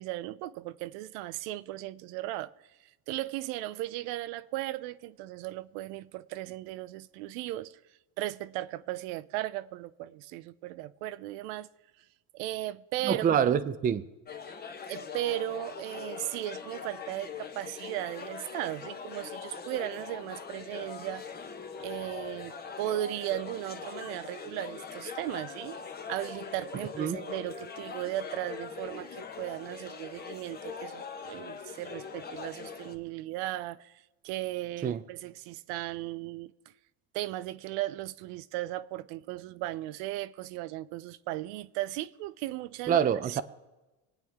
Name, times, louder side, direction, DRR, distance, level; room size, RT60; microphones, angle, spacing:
voice 1, 0.0-2.5 3.1-7.8 8.2-11.7 12.3-13.4 14.9-21.2 21.8-25.8 26.1-36.5 37.1-43.4, right 15 dB, 70° right, 0.7 m, -36 dB
voice 2, 13.0-14.0 27.0-27.2 34.8-35.0 42.9-43.4, right 8 dB, 20° right, 0.5 m, -26 dB
sound 1, 14.3-32.9, left 6 dB, 20° left, 1.1 m, -42 dB
25.0 x 9.1 x 3.5 m
cardioid pair, 135°, 45 cm